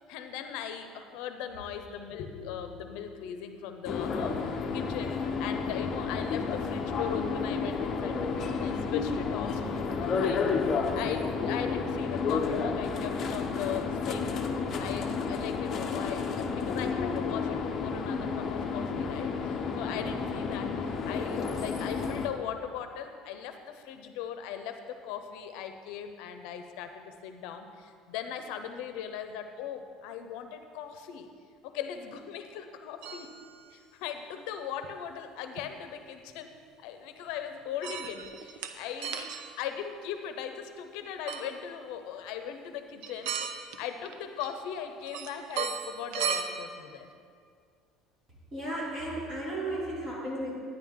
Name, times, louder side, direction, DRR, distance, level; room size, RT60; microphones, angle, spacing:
voice 1, 0.1-14.4 14.8-31.3 31.6-33.3 33.7-36.5 36.8-39.3 39.6-47.1, left 8 dB, 75° left, 7 dB, 0.7 m, -39 dB
sound 1, 3.8-22.3, left 5 dB, 30° left, 0.7 m, -31 dB
sound 2, 33.0-33.6 34.8-34.9 35.6-35.7 37.8-38.7 39.0-39.5 41.3-41.5 43.0-43.8 44.0-44.7 45.0-46.4, right 7 dB, 80° right, 0.7 m, -35 dB
voice 2, 48.5-50.5, right 1 dB, 25° right, -6 dB, 2.9 m, -34 dB
11.0 x 9.9 x 3.7 m, 2.2 s
cardioid pair, 160°, 0 cm